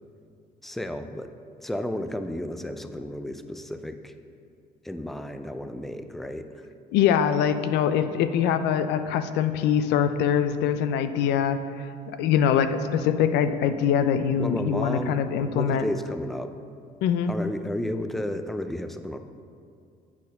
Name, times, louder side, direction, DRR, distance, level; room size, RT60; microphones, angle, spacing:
voice 1, 0.6-1.3 1.6-4.1 4.8-6.6 14.4-16.5 17.3-19.2, left 1 dB, ahead, 8 dB, 0.4 m, -32 dB
voice 2, 6.9-11.6 12.2-15.8 17.0-17.3, left 8 dB, 85° left, 10 dB, 0.5 m, -23 dB
8.4 x 4.3 x 5.3 m, 2.4 s
cardioid pair, 110°, 17 cm